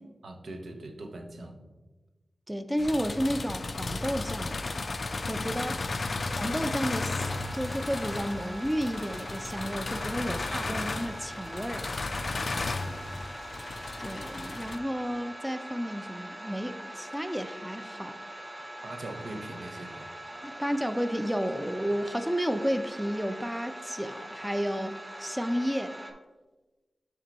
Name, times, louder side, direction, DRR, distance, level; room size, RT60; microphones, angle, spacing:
voice 1, 0.2-1.6 6.1-6.4 10.2-11.0 12.5-13.0 18.8-20.1, right 2 dB, 80° right, 4 dB, 0.7 m, -42 dB
voice 2, 2.5-4.6 5.3-5.8 6.4-7.3 7.5-11.8 14.0-18.2 20.4-26.0, equal, 5° right, 9 dB, 0.4 m, -32 dB
sound 1, 2.8-14.8, left 3 dB, 60° left, 0.4 m, -34 dB
sound 2, 7.1-26.1, right 1 dB, 30° right, 1.0 m, -43 dB
7.3 x 3.5 x 4.0 m, 1.2 s
cardioid pair, 55°, 0 cm